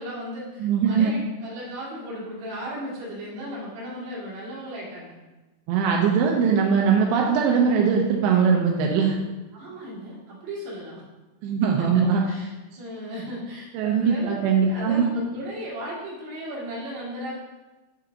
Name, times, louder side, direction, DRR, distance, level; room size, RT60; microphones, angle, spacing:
voice 1, 0.0-5.1 9.5-11.0 11.6-17.3, equal, 60° right, -6 dB, 3.1 m, -36 dB
voice 2, 0.6-1.1 5.7-9.2 11.4-12.2 13.7-15.1, right 6 dB, 85° right, 0 dB, 2.9 m, -21 dB
7.0 x 5.7 x 2.5 m, 1.1 s
omnidirectional pair, 5.2 m